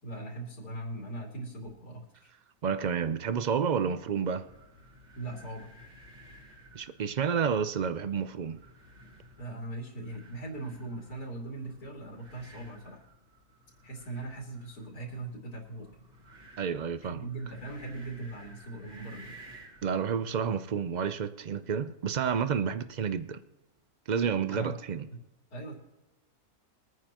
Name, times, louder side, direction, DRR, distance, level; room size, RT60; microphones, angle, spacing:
voice 1, 0.0-2.3 5.1-5.8 9.4-13.0 13.8-15.9 17.0-19.4 24.5-24.8 25.1-25.2 25.5-25.8, right 2 dB, 85° left, 3.1 m, -40 dB
voice 2, 2.6-4.5 6.7-8.6 16.6-17.2 19.8-23.4 24.1-25.1, right 7 dB, 70° right, 0.4 m, -30 dB
sound 1, 4.4-19.9, right 1 dB, 30° right, 2.0 m, -55 dB
22.5 x 9.4 x 2.9 m
omnidirectional pair, 1.6 m